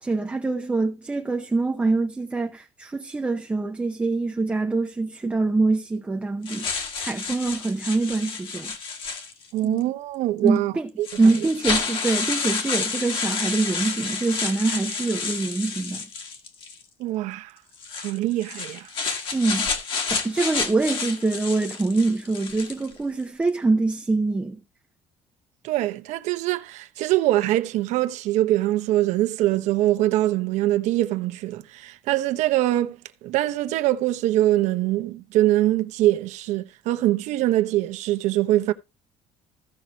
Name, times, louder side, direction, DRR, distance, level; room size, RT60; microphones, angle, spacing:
voice 1, 0.0-8.8 9.6-9.8 10.4-10.9 11.2-16.1 19.3-19.7 20.1-24.6, right 3 dB, 10° right, 0.7 m, -24 dB
sound 1, 6.5-9.6 10.5-10.6 11.0-16.8 17.7-22.9, left 5 dB, 45° left, 1.8 m, -30 dB
voice 2, 9.5-10.7 11.0-11.1 17.0-17.5 18.0-18.9 25.6-38.7, right 15 dB, 75° right, 1.0 m, -23 dB
15.5 x 6.0 x 3.0 m
cardioid pair, 170°, 12 cm